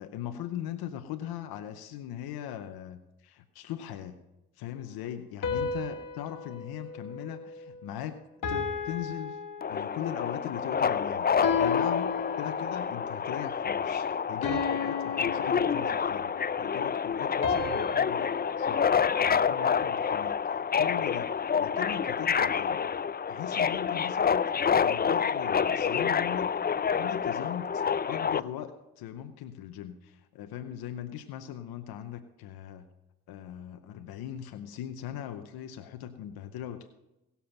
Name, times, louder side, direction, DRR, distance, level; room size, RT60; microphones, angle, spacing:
voice 1, 0.0-4.2 4.5-9.4 9.7-16.3 16.6-23.0 23.3-26.6 27.0-32.9 33.3-36.9, left 10 dB, 85° left, 9 dB, 0.8 m, -40 dB
sound 1, 5.4-7.9 8.4-10.2 11.4-13.0 14.4-16.3 17.4-19.8, left 5 dB, 60° left, 2.0 m, -35 dB
Subway metro underground, 9.6-28.4, left 7 dB, 25° left, 0.5 m, -28 dB
18.0 x 7.0 x 5.8 m, 0.93 s
supercardioid pair, 55°, 36 cm